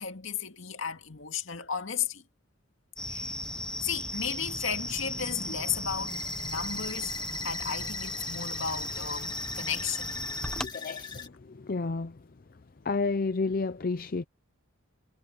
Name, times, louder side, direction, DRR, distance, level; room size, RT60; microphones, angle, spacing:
voice 1, 0.0-2.2 3.1-3.4 3.8-7.2 7.4-10.2, left 7 dB, 65° left, 2.3 m, -34 dB
sound 1, 3.0-10.7, left 1 dB, 5° left, 0.9 m, -36 dB
sound 2, 6.1-11.3, left 4 dB, 20° left, 2.2 m, -42 dB
voice 2, 10.7-12.2 12.8-14.2, left 3 dB, 45° left, 0.5 m, -31 dB
head